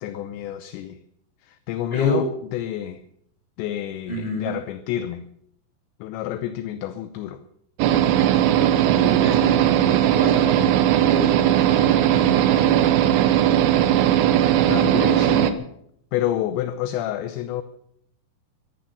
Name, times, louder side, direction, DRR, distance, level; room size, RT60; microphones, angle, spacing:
voice 1, 0.0-1.0 1.4-3.0 3.6-5.2 6.0-7.4 14.7-15.7 16.1-17.6, left 12 dB, 80° left, 2.7 m, -28 dB
voice 2, 1.9-2.2 4.1-4.5 8.8-12.9, equal, 10° left, 6.0 m, -30 dB
sound 1, 7.8-15.5, right 11 dB, 85° right, 3.6 m, -18 dB
14.0 x 14.0 x 6.8 m
omnidirectional pair, 5.7 m